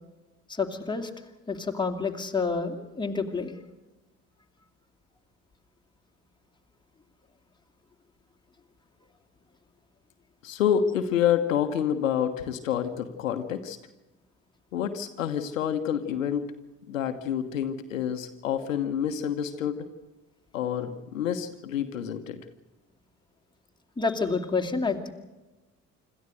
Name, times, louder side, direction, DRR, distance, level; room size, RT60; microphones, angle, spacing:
voice 1, 0.5-1.1 1.5-3.5 24.0-25.1, left 4 dB, 10° left, 2 dB, 2.7 m, -28 dB
voice 2, 10.4-13.8 14.7-16.4 16.9-19.8 20.5-22.4, left 9 dB, 80° left, 8 dB, 1.2 m, -28 dB
26.5 x 13.5 x 7.9 m, 1.1 s
figure-of-eight pair, 50°, 39 cm